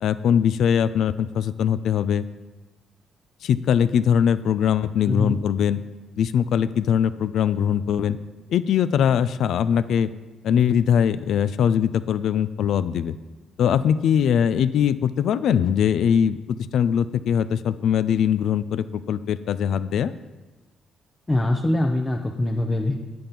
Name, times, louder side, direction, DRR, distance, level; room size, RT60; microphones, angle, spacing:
voice 1, 0.0-2.2 3.4-5.8 6.2-8.2 8.5-10.1 10.4-13.1 13.6-16.4 16.7-20.1, left 8 dB, 75° left, 14 dB, 0.4 m, -21 dB
voice 2, 5.1-5.4 21.3-22.9, left 1 dB, 20° left, 2 dB, 0.7 m, -23 dB
9.3 x 5.2 x 5.7 m, 1.2 s
cardioid pair, 90°, 0 cm